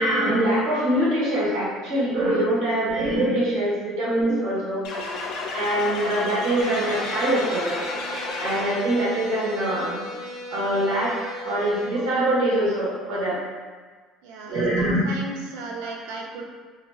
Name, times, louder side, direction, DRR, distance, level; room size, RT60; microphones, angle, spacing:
voice 1, 0.0-4.8 5.5-7.8 8.4-10.1 10.5-13.4 14.5-15.0, right 1 dB, 65° right, -7 dB, 1.2 m, -23 dB
sound 1, 4.8-9.0, left 2 dB, 65° left, 0.5 m, -32 dB
sound 2, 6.6-11.9, left 2 dB, 15° left, 0.7 m, -37 dB
voice 2, 14.2-16.4, right 2 dB, 90° right, 0 dB, 0.5 m, -35 dB
2.9 x 2.9 x 2.3 m, 1.5 s
cardioid pair, 165°, 0 cm